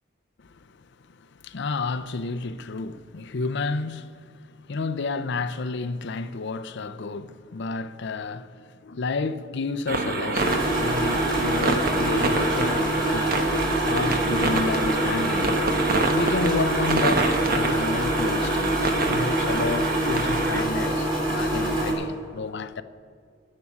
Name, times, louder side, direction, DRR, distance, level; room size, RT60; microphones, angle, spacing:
voice 1, 0.4-0.8 1.1-13.5 13.8-15.6 16.1-22.8, left 3 dB, 60° left, 0.5 m, -31 dB
sound 1, 9.9-20.6, right 3 dB, 50° right, 1.1 m, -27 dB
sound 2, 10.4-21.9, right 1 dB, 25° right, 3.0 m, -25 dB
11.0 x 7.5 x 9.8 m
head